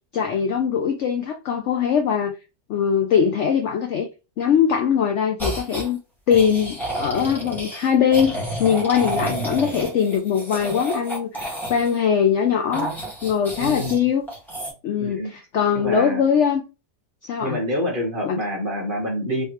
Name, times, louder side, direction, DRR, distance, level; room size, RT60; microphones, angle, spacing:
voice 1, 0.1-2.3 2.7-4.1 4.4-6.0 6.3-12.9 13.2-14.3 14.8-16.6 17.2-17.6 18.2-18.4, left 7 dB, 85° left, 0.6 m, -21 dB
sound 1, 5.4-5.9 6.3-12.0 12.7-14.0 14.3-14.7, right 1 dB, ahead, 1.4 m, -30 dB
voice 2, 9.1-9.5 13.6-14.1 15.0-15.3 15.7-16.2 17.4-19.4, equal, 35° right, 1.2 m, -27 dB
3.5 x 3.2 x 2.9 m
omnidirectional pair, 1.8 m